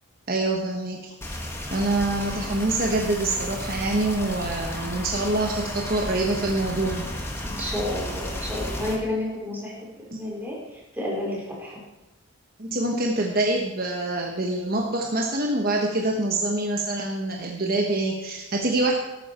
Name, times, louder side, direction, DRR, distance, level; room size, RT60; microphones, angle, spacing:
voice 1, 0.3-1.1 1.7-7.1 9.0-9.1 10.1-10.2 12.6-18.9, right 2 dB, 45° right, 0 dB, 1.3 m, -25 dB
sound 1, 1.2-8.9, left 1 dB, 10° left, 1.6 m, -33 dB
voice 2, 7.4-11.8, left 1 dB, 10° right, -4 dB, 3.9 m, -31 dB
13.0 x 13.0 x 4.4 m, 1.0 s
head